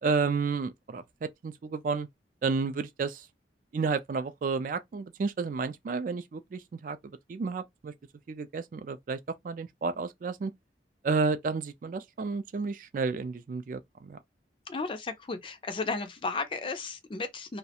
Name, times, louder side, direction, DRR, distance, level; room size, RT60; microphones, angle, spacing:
voice 1, 0.0-2.1 2.4-3.3 3.7-7.9 8.3-9.2 9.4-10.5 11.0-14.2, right 4 dB, 45° right, 0.3 m, -31 dB
voice 2, 14.7-17.6, left 3 dB, 30° left, 0.4 m, -34 dB
2.3 x 2.1 x 2.7 m
head